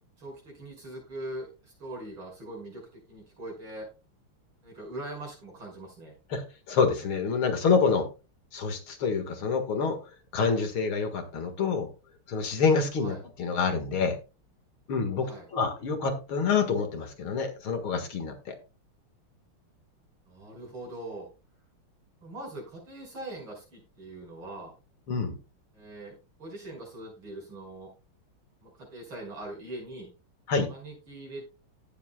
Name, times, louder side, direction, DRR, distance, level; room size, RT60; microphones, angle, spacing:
voice 1, 0.2-3.9 4.6-6.1 13.0-13.2 15.2-15.4 20.3-21.3 22.2-24.7 25.7-27.9 28.6-30.1 30.7-31.6, right 1 dB, 65° right, -1 dB, 6.6 m, -42 dB
voice 2, 6.3-8.1 8.5-10.0 10.3-11.9 12.3-14.1 14.9-18.6 25.1-25.4 30.5-30.7, left 5 dB, 70° left, 6 dB, 2.6 m, -27 dB
17.0 x 7.6 x 2.3 m, 0.30 s
omnidirectional pair, 2.4 m